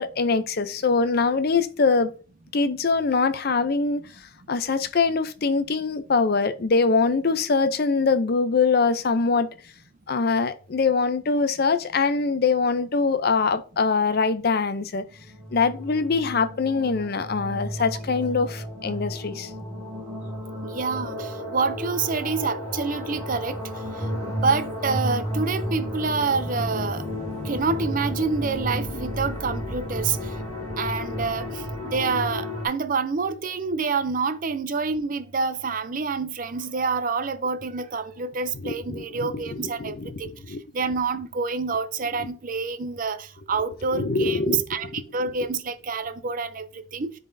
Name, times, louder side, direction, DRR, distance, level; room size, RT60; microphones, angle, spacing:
voice 1, 0.0-2.1 2.5-4.0 4.5-9.5 10.1-15.0 15.5-19.5 38.5-40.6 42.2-42.3 43.9-45.4, left 4 dB, 45° left, 0.5 m, -23 dB
sound 1, 15.1-32.7, equal, 15° left, 3.2 m, -32 dB
voice 2, 20.6-23.6 24.0-27.0 27.5-30.2 30.8-31.5 31.8-40.3 40.7-44.9 45.1-47.1, right 4 dB, 40° right, 0.5 m, -27 dB
10.5 x 3.9 x 2.6 m
head